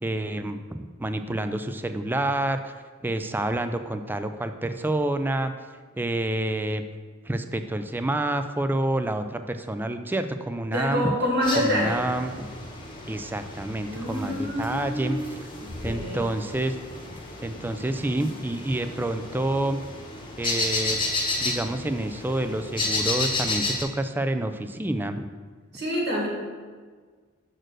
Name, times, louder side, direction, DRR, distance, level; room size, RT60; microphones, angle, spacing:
voice 1, 0.0-2.7 3.0-5.5 6.0-6.8 7.3-11.1 11.6-12.5 13.1-15.4 15.8-16.8 17.1-19.8 20.4-21.0 21.4-25.3, right 1 dB, 10° right, 9 dB, 0.3 m, -28 dB
voice 2, 10.7-12.0 13.9-15.3 15.6-16.2 25.7-26.3, equal, 55° right, -4 dB, 2.0 m, -27 dB
sound 1, 11.4-23.8, left 2 dB, 25° left, 1.0 m, -32 dB
6.4 x 4.4 x 6.2 m, 1.5 s
head